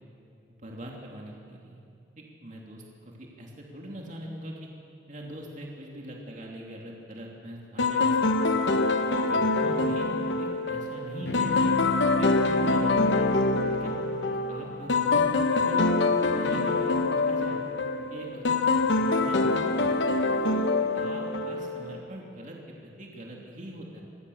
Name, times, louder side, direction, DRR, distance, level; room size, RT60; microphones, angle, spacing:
voice 1, 0.6-1.8 2.2-4.7 5.1-8.5 9.2-11.7 12.1-13.1 13.7-13.9 14.3-16.0 16.3-17.6 18.1-18.6 18.9-19.9 20.5-24.0, right 1 dB, 45° right, -1 dB, 3.0 m, -41 dB
sound 1, 7.8-22.0, left 3 dB, 85° left, 1.3 m, -25 dB
sound 2, 11.2-16.1, left 1 dB, 65° left, 1.0 m, -35 dB
26.0 x 16.0 x 7.2 m, 2.5 s
head